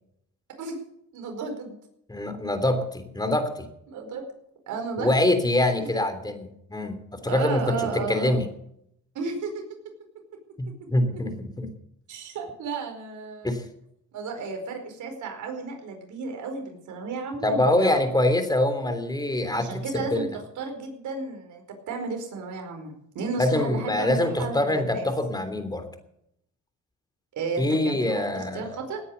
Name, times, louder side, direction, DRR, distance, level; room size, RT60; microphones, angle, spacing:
voice 1, 1.1-1.8 3.9-4.2 4.7-5.1 7.3-8.4 9.1-9.6 12.1-13.6 14.1-18.0 19.5-25.1 27.3-29.0, right 4 dB, 75° right, 4 dB, 4.9 m, -33 dB
voice 2, 2.1-3.7 5.0-8.5 10.6-11.7 13.4-13.6 17.4-19.7 19.9-20.3 23.4-25.9 27.6-28.8, left 1 dB, 15° left, 8 dB, 3.2 m, -24 dB
18.5 x 9.8 x 6.9 m, 0.75 s
cardioid pair, 90°, 30 cm